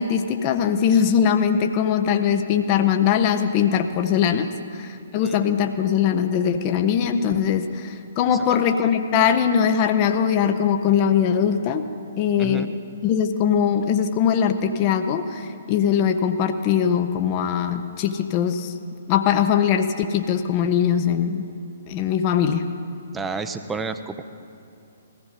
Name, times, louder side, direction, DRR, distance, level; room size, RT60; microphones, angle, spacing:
voice 1, 0.0-11.9 12.2-12.8 13.0-18.7 19.1-21.5 21.9-22.6, left 8 dB, 30° left, 7 dB, 0.7 m, -21 dB
voice 2, 5.2-5.5 8.3-8.9 12.4-12.7 23.1-24.2, right 4 dB, 10° right, 9 dB, 0.6 m, -32 dB
21.0 x 15.5 x 4.0 m, 2.6 s
figure-of-eight pair, 125°, 0 cm